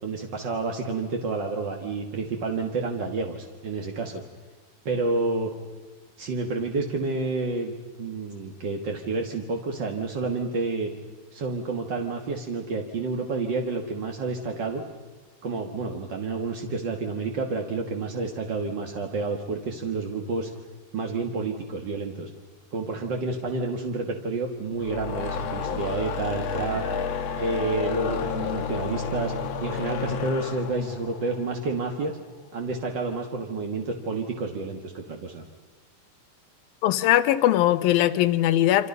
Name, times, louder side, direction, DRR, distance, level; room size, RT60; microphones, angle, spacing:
voice 1, 0.0-4.2 4.8-5.5 6.2-7.7 8.0-10.9 11.3-14.8 15.4-20.5 20.9-22.3 22.7-26.8 27.4-29.3 29.6-32.1 32.5-35.4, right 3 dB, 50° right, 2 dB, 1.4 m, -29 dB
sound 1, 24.7-32.1, left 6 dB, 60° left, 2.0 m, -31 dB
voice 2, 36.8-38.9, left 13 dB, 80° left, 13 dB, 2.6 m, -20 dB
28.5 x 26.0 x 5.5 m, 1.3 s
omnidirectional pair, 4.3 m